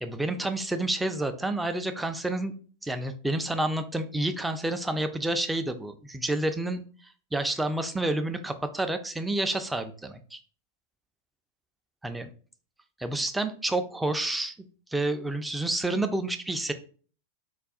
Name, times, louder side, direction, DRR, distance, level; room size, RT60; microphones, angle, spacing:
voice 1, 0.0-2.5 2.8-6.8 7.3-10.4 12.0-12.3 13.0-14.5 14.9-16.7, right 2 dB, 5° right, 8 dB, 0.3 m, -29 dB
2.3 x 2.2 x 3.6 m, 0.42 s
figure-of-eight pair, 90°, 0 cm